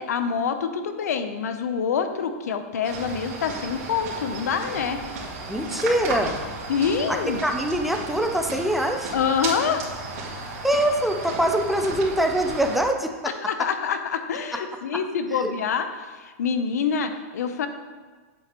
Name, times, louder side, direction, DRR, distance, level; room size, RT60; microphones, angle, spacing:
voice 1, 0.0-5.0 6.7-7.4 9.1-9.8 10.3-10.6 13.4-15.9 16.1-17.7, left 6 dB, 90° left, 9 dB, 0.7 m, -26 dB
sound 1, 2.8-12.8, right 3 dB, 70° right, 2.4 m, -34 dB
voice 2, 5.5-6.4 7.1-9.1 10.6-13.3 15.3-15.5, right 1 dB, ahead, 4 dB, 0.4 m, -24 dB
8.8 x 7.8 x 3.0 m, 1.4 s
supercardioid pair, 150°, 8 cm